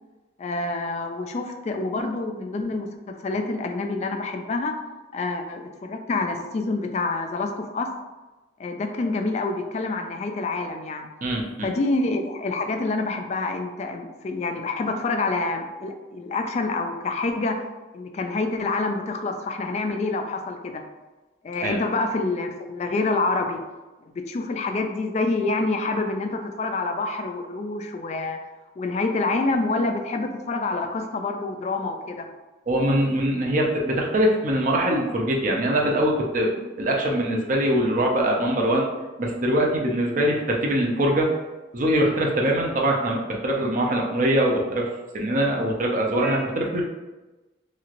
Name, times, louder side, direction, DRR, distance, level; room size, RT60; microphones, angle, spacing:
voice 1, 0.4-4.7 5.1-7.9 8.6-11.1 11.6-17.6 17.9-20.8 21.4-23.6 24.1-28.4 28.8-32.2, left 3 dB, 40° left, 5 dB, 0.3 m, -27 dB
voice 2, 11.2-11.7 21.6-21.8 32.7-38.9 39.2-41.4 41.7-44.9 45.1-46.8, right 1 dB, 45° right, 0 dB, 0.5 m, -23 dB
3.0 x 2.9 x 2.4 m, 1.1 s
head